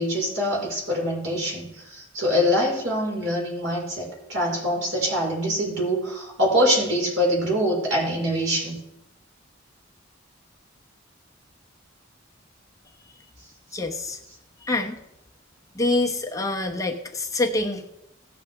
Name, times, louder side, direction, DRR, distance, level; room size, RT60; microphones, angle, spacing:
voice 1, 0.0-8.8, equal, 85° right, -2 dB, 4.9 m, -24 dB
voice 2, 13.7-14.2 14.6-15.0 15.7-17.9, left 2 dB, 20° left, 1 dB, 1.0 m, -26 dB
17.0 x 7.4 x 3.5 m, 0.84 s
head